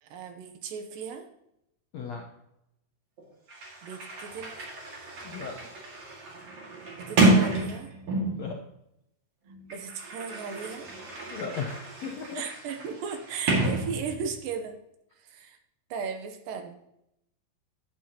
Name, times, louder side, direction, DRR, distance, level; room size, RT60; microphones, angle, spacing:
voice 1, 0.0-1.2 3.8-4.5 7.0-7.9 9.7-10.9 12.3-14.8 15.2-15.6 15.9-16.8, right 6 dB, 75° right, 6 dB, 2.5 m, -36 dB
voice 2, 1.9-2.2 5.2-5.6 8.2-8.6 11.3-12.4, left 5 dB, 70° left, 1 dB, 1.7 m, -36 dB
Sliding door, 3.2-3.3 3.5-8.5 9.5-14.4, right 2 dB, 45° right, 2.8 m, -29 dB
12.5 x 8.8 x 2.9 m, 0.82 s
omnidirectional pair, 4.2 m